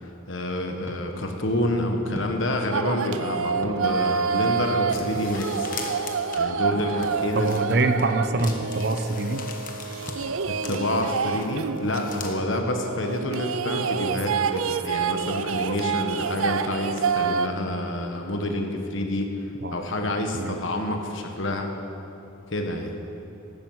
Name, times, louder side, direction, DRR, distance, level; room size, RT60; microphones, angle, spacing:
voice 1, 0.3-5.7 6.4-7.6 10.5-19.3 19.7-21.7 22.5-22.9, left 1 dB, 65° left, 3 dB, 1.5 m, -28 dB
sound 1, 0.8-1.0 2.1-2.3 3.6-3.8 5.1-5.3 6.8-6.9 8.4-8.6 10.1-10.2 11.3-11.5 12.4-12.6, equal, 15° right, 1.0 m, -39 dB
sound 2, 2.7-17.5, right 6 dB, 80° right, 0.5 m, -28 dB
sound 3, 4.9-8.0 8.4-12.3, left 6 dB, 40° left, 1.2 m, -41 dB
voice 2, 7.3-9.5 19.6-19.8 20.3-20.6, right 2 dB, 50° right, 8 dB, 0.7 m, -24 dB
12.0 x 8.9 x 7.9 m, 2.9 s
head